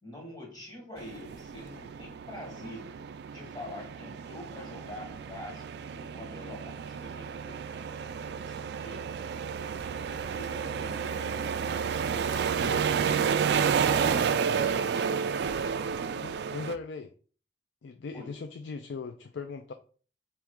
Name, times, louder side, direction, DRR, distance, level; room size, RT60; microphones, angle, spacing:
voice 1, 0.0-3.0 3.3-9.1 10.0-11.5 12.0-13.3 13.8-16.3 18.1-18.4, left 1 dB, 20° left, -1 dB, 1.6 m, -46 dB
sound 1, 1.0-16.8, right 6 dB, 60° right, 0.3 m, -31 dB
voice 2, 12.6-13.1 14.2-14.3 16.2-17.1 17.8-19.7, left 4 dB, 80° left, 8 dB, 0.4 m, -39 dB
4.5 x 3.1 x 3.7 m, 0.41 s
head